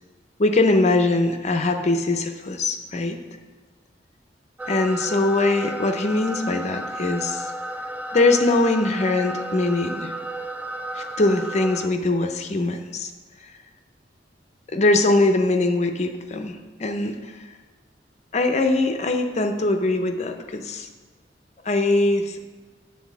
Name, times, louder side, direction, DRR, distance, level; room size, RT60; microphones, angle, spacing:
voice 1, 0.4-3.2 4.7-7.5 8.1-10.1 10.9-13.1 13.4-13.5 14.7-17.4 18.3-20.9 21.6-22.4, left 2 dB, 40° left, 6 dB, 0.6 m, -22 dB
sound 1, 4.6-11.9, right 1 dB, 10° right, 0.3 m, -33 dB
9.5 x 4.1 x 5.9 m, 1.3 s
head